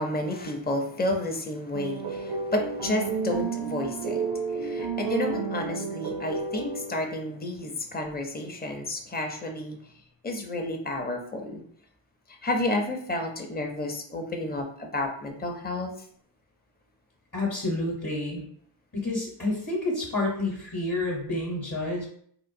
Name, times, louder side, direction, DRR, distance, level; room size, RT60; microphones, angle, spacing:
voice 1, 0.0-9.8 10.2-11.6 12.3-15.9, left 1 dB, 20° left, 2 dB, 0.6 m, -31 dB
sound 1, 1.7-7.2, right 5 dB, 65° right, 0.6 m, -31 dB
voice 2, 17.3-18.4 18.9-22.1, left 2 dB, 40° left, -4 dB, 1.0 m, -29 dB
3.7 x 2.4 x 2.6 m, 0.63 s
wide cardioid pair, 40°, 46 cm